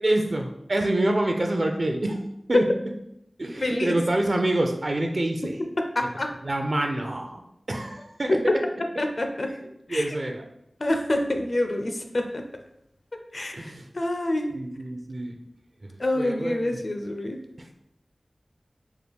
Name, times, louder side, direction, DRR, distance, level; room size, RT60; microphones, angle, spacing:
voice 1, 0.0-2.6 3.4-5.6 6.4-7.4 7.7-8.4 9.9-10.5 13.5-13.9 14.5-15.4 16.2-16.8 17.6-17.7, right 1 dB, 50° right, 3 dB, 0.5 m, -26 dB
voice 2, 3.6-4.0 5.9-6.3 8.3-8.4 9.0-9.5 9.9-10.1 10.8-12.4 13.3-14.5 16.0-17.4, left 1 dB, 55° left, 5 dB, 0.4 m, -26 dB
4.6 x 2.3 x 3.4 m, 0.79 s
wide cardioid pair, 75°, 0 cm